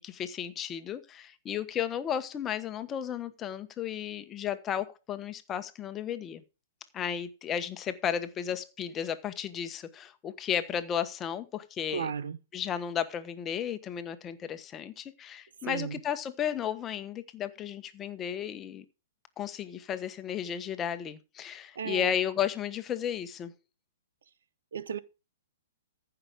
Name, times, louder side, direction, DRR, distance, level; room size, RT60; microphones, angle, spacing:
voice 1, 0.0-6.4 6.9-12.1 12.5-18.8 19.4-23.5, left 9 dB, 20° left, 1.2 m, -34 dB
voice 2, 11.9-12.4 15.6-16.0 21.8-22.2 24.7-25.0, right 7 dB, 75° right, 0.8 m, -34 dB
14.5 x 5.9 x 5.1 m
hypercardioid pair, 130°, 0 cm